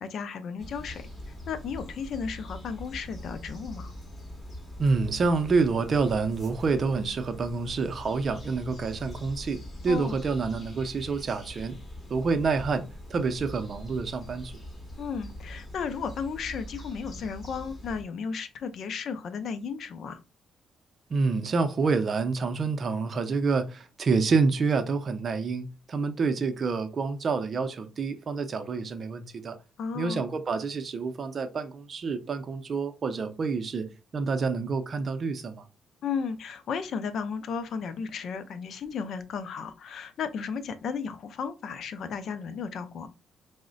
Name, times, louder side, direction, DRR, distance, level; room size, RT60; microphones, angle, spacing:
voice 1, 0.0-3.9 9.9-10.2 15.0-20.2 29.8-30.3 36.0-43.1, left 6 dB, 65° left, 0.4 m, -34 dB
sound 1, 0.6-18.0, left 1 dB, 30° left, 1.8 m, -43 dB
voice 2, 4.8-11.7 12.1-12.8 13.1-14.5 21.1-29.6 29.9-33.9 34.1-35.6, right 4 dB, 45° right, 0.5 m, -28 dB
4.8 x 2.1 x 2.4 m
cardioid pair, 90°, 0 cm